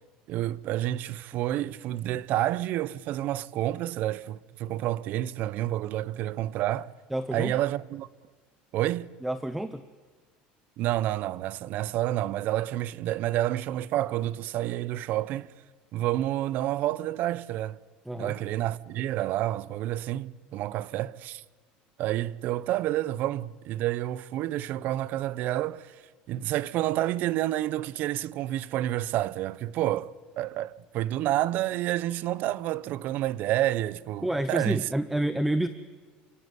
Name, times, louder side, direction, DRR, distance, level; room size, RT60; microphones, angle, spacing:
voice 1, 0.3-6.9 7.3-8.1 8.7-9.1 10.8-15.5 15.9-17.8 18.2-21.4 22.0-26.0 26.3-34.9, right 14 dB, 55° right, 0.8 m, -29 dB
voice 2, 7.1-7.6 9.2-9.8 18.1-18.3 34.2-35.7, right 1 dB, 5° right, 0.9 m, -28 dB
28.5 x 17.0 x 9.5 m
cardioid pair, 135°, 4 cm